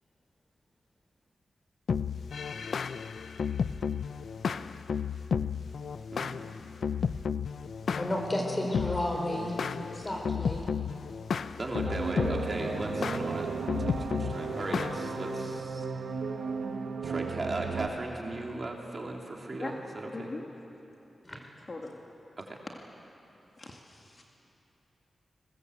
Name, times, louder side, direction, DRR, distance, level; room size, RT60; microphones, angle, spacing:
sound 1, 1.9-15.6, left 6 dB, 75° left, 0.6 m, -33 dB
voice 1, 7.9-9.6 9.9-10.7 21.2-21.4, left 1 dB, 20° left, 1 dB, 4.9 m, -32 dB
voice 2, 11.6-13.5 13.8-15.9 17.0-20.3 22.4-22.6, right 2 dB, 35° right, 0 dB, 3.0 m, -37 dB
sound 2, 11.8-17.9, right 5 dB, 80° right, 1.4 m, -35 dB
voice 3, 20.1-20.5 21.7-21.9 23.6-24.2, left 3 dB, 40° left, 0 dB, 2.2 m, -40 dB
29.5 x 21.0 x 8.1 m, 2.9 s
wide cardioid pair, 120°, 0 cm